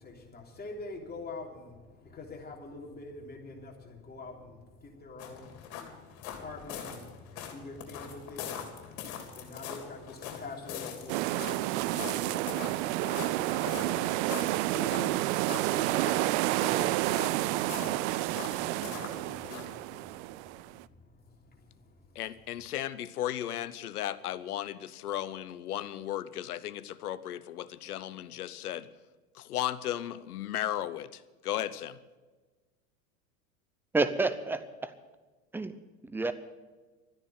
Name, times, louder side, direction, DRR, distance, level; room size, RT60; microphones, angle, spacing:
voice 1, 0.0-22.6, left 3 dB, 20° left, 0 dB, 3.3 m, -46 dB
sound 1, 5.2-19.7, left 8 dB, 50° left, 3.4 m, -43 dB
sound 2, 11.1-20.8, right 18 dB, 50° right, 0.5 m, -30 dB
voice 2, 22.1-28.9 29.3-32.0, left 12 dB, 75° left, 16 dB, 0.9 m, -35 dB
voice 3, 33.9-34.9 35.5-35.7 36.0-36.3, right 3 dB, 5° right, 12 dB, 0.8 m, -29 dB
13.5 x 10.0 x 9.0 m, 1.3 s
hypercardioid pair, 85°, 45 cm